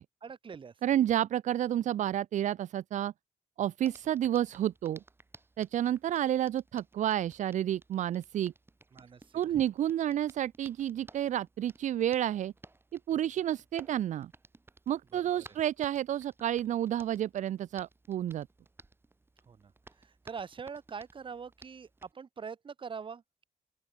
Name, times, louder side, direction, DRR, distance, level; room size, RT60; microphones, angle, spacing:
voice 1, 0.2-0.7 8.9-9.3 9.5-9.6 15.1-15.4 19.5-19.7 20.0-23.4, right 6 dB, 40° right, 3.0 m, -43 dB
voice 2, 0.8-3.1 3.6-5.0 5.6-8.5 9.3-12.5 13.1-14.3 14.9-18.5, right 11 dB, 70° right, 0.4 m, -30 dB
Hands, 3.8-22.1, right 2 dB, 15° right, 3.0 m, -58 dB
open air
wide cardioid pair, 165°, 13 cm